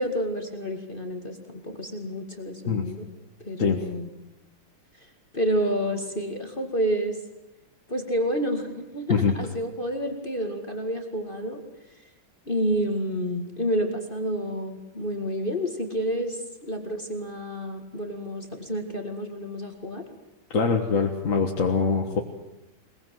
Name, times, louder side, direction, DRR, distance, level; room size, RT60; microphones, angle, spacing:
voice 1, 0.0-3.1 3.4-4.1 5.0-7.2 7.9-11.6 12.5-20.0, equal, 25° left, 4 dB, 2.1 m, -29 dB
voice 2, 20.5-22.2, left 5 dB, 40° left, 2 dB, 1.7 m, -23 dB
22.0 x 21.5 x 7.8 m, 0.93 s
omnidirectional pair, 2.3 m